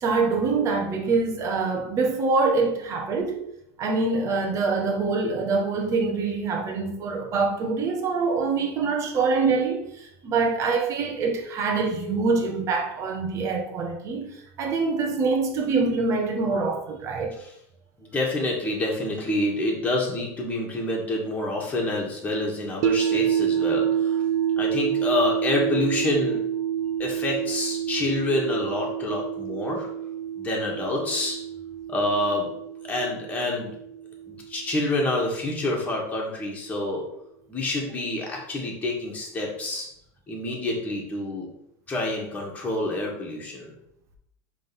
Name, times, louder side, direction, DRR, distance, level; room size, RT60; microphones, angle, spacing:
voice 1, 0.0-3.4 3.8-17.4, right 4 dB, 40° right, 1.4 m, -25 dB
voice 2, 18.0-24.2 24.6-26.4 27.0-29.9 30.4-31.4 31.9-32.5 32.9-33.7 34.3-37.0 37.5-39.9 40.3-41.5 41.9-43.7, left 2 dB, 20° left, 2.0 m, -27 dB
sound 1, 22.8-34.9, right 9 dB, 80° right, 0.3 m, -28 dB
5.2 x 3.7 x 5.4 m
supercardioid pair, 125°, 8 cm